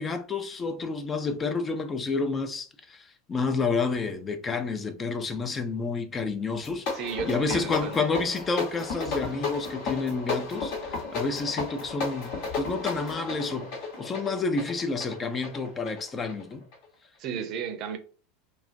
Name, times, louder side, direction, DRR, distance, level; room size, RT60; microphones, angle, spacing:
voice 1, 0.0-16.6, left 4 dB, 25° left, 0.4 m, -30 dB
sound 1, 6.5-16.9, left 4 dB, 55° left, 0.9 m, -34 dB
voice 2, 6.9-8.0 17.2-18.0, right 7 dB, 50° right, 0.5 m, -33 dB
2.3 x 2.1 x 2.5 m
hypercardioid pair, 85°, 0 cm